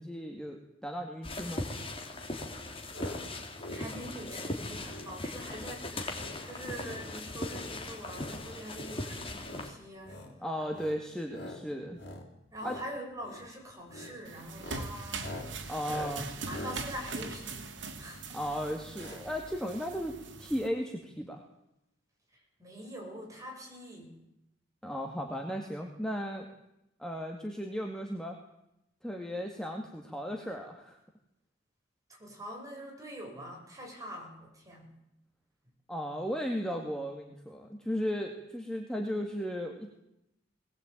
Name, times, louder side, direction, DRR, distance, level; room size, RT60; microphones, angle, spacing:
voice 1, 0.0-1.6 10.4-12.0 12.6-12.8 15.7-16.3 18.3-21.4 24.8-26.5 27.0-28.4 29.0-31.0 35.9-40.0, equal, 5° left, 2 dB, 2.0 m, -35 dB
sound 1, 1.2-9.7, left 2 dB, 30° left, 3.3 m, -39 dB
sound 2, 2.9-3.2 3.5-3.9 4.2-4.5 4.8-5.1 5.5-5.8 6.1-6.4 6.7-7.1 7.4-8.4 8.7-9.0 9.4-9.7 10.0-10.3 10.7-11.0 11.3-11.6 11.9-12.2 12.5-12.9 13.2-13.5 13.9-14.1 14.5-18.2 19.0-19.2 19.5-19.6 19.8-19.9, left 1 dB, 60° left, 5.1 m, -45 dB
voice 2, 3.7-11.0 12.5-15.3 16.5-18.3 22.3-24.2 32.1-34.9, equal, 20° right, -1 dB, 7.0 m, -44 dB
sound 3, 14.2-20.7, right 4 dB, 75° right, 2.6 m, -42 dB
20.5 x 19.5 x 9.1 m, 0.85 s
head